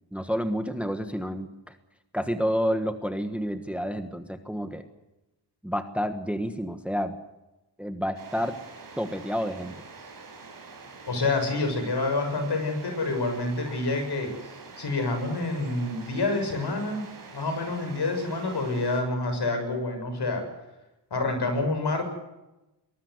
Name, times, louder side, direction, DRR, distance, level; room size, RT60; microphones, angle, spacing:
voice 1, 0.1-1.7 2.1-4.8 5.6-7.1 7.8-8.6 9.0-9.7, equal, 5° right, 8 dB, 1.3 m, -29 dB
sound 1, 8.1-19.0, right 4 dB, 50° right, 6.1 m, -46 dB
voice 2, 11.1-14.3 14.8-17.1 17.3-20.5 21.1-22.0, left 2 dB, 65° left, 6 dB, 7.1 m, -27 dB
23.5 x 20.0 x 8.1 m, 0.98 s
wide cardioid pair, 170°, 43 cm